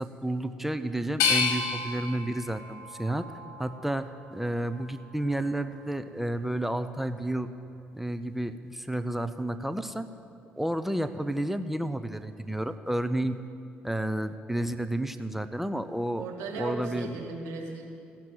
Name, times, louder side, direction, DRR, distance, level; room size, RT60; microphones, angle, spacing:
voice 1, 0.0-3.3 3.6-7.5 7.9-10.1 10.5-13.4 13.8-16.2 16.6-17.2, right 1 dB, 5° right, 10 dB, 0.6 m, -31 dB
sound 1, 1.2-4.1 4.7-5.5, left 5 dB, 70° left, 1.6 m, -31 dB
voice 2, 16.1-17.8, right 3 dB, 75° right, 0 dB, 1.9 m, -36 dB
16.5 x 5.9 x 9.4 m, 2.5 s
hypercardioid pair, 50°, 5 cm